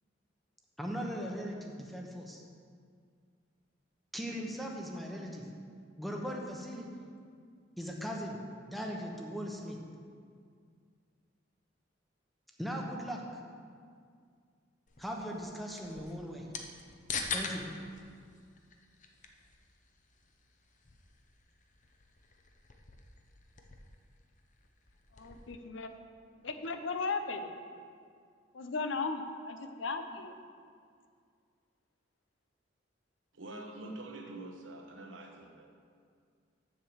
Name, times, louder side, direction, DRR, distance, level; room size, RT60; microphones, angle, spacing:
voice 1, 0.8-2.4 4.1-5.4 6.0-6.9 7.8-8.4 8.7-9.8 12.6-13.2 15.0-16.5 17.3-17.6, equal, ahead, 0 dB, 1.0 m, -39 dB
sound 1, 14.9-25.6, left 5 dB, 40° left, 0.7 m, -45 dB
voice 2, 25.1-25.9 26.4-27.5 28.5-30.4, left 4 dB, 75° left, 8 dB, 0.7 m, -36 dB
voice 3, 33.3-35.7, right 2 dB, 75° right, 3 dB, 1.2 m, -45 dB
7.4 x 6.5 x 7.2 m, 2.2 s
head